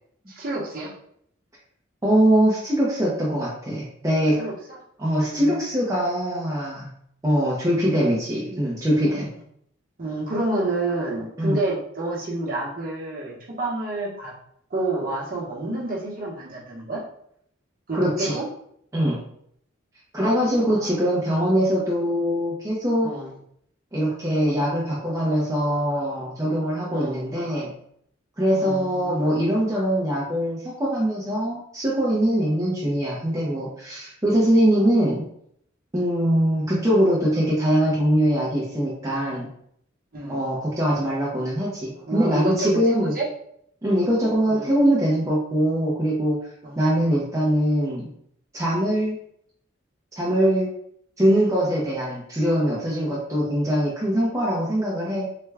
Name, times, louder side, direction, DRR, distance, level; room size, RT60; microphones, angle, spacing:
voice 1, 0.4-0.9 4.4-4.8 5.1-5.6 9.1-9.2 10.0-14.3 14.7-17.0 17.9-18.4 20.7-21.1 23.0-23.3 26.9-27.3 28.6-29.4 40.1-40.4 41.9-43.3 44.5-44.7 46.6-46.8, right 2 dB, 45° right, -4 dB, 0.9 m, -29 dB
voice 2, 2.0-4.4 5.0-6.9 7.2-9.3 11.4-11.6 17.9-18.4 18.9-19.2 20.1-23.1 23.9-27.7 28.4-35.2 35.9-39.5 40.3-43.2 43.8-46.4 46.8-48.1 48.5-49.2 50.2-50.7 51.2-55.3, equal, 15° right, -6 dB, 0.5 m, -22 dB
3.2 x 2.2 x 3.3 m, 0.69 s
head